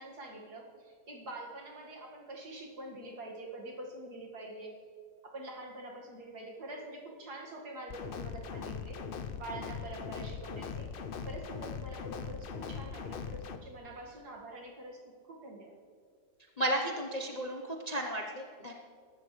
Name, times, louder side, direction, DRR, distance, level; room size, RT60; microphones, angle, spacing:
voice 1, 0.0-4.7 5.2-9.0 9.4-10.9 11.2-15.0 15.2-15.8, right 1 dB, 60° right, -1 dB, 2.5 m, -45 dB
sound 1, 7.9-13.6, left 6 dB, 80° left, 0.5 m, -40 dB
voice 2, 16.6-18.7, right 1 dB, 30° left, 0 dB, 0.8 m, -34 dB
22.5 x 12.5 x 3.2 m, 2.1 s
omnidirectional pair, 1.9 m